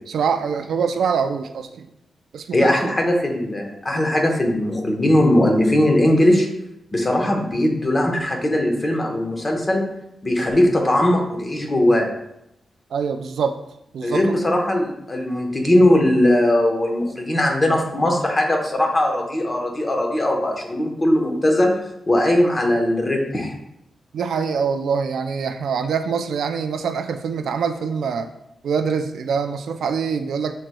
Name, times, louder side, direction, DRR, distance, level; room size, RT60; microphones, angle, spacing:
voice 1, 0.1-1.9 2.3-2.9 12.9-13.6 13.9-14.2 24.1-28.3 28.6-30.5, right 6 dB, 85° right, 7 dB, 0.3 m, -24 dB
voice 2, 2.5-6.5 6.9-9.8 10.2-12.1 14.0-21.7 22.1-23.5, left 1 dB, 25° left, 1 dB, 0.9 m, -19 dB
7.4 x 3.1 x 2.2 m, 0.81 s
cardioid pair, 100°, 0 cm